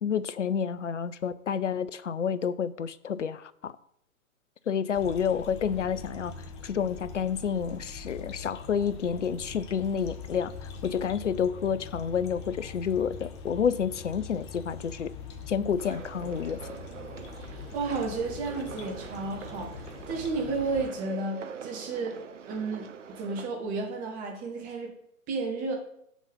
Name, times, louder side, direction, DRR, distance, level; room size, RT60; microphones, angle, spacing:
voice 1, 0.0-3.7 4.7-6.3 6.6-15.1 15.5-16.6, left 7 dB, 60° left, 16 dB, 0.7 m, -29 dB
sound 1, 4.9-20.9, left 5 dB, 20° left, 0.7 m, -43 dB
sound 2, 15.8-23.5, right 7 dB, 60° right, 0.8 m, -44 dB
voice 2, 17.5-22.2 22.4-24.9 25.3-25.8, right 3 dB, 20° right, 2 dB, 1.5 m, -32 dB
7.3 x 6.2 x 5.4 m, 0.74 s
figure-of-eight pair, 125°, 42 cm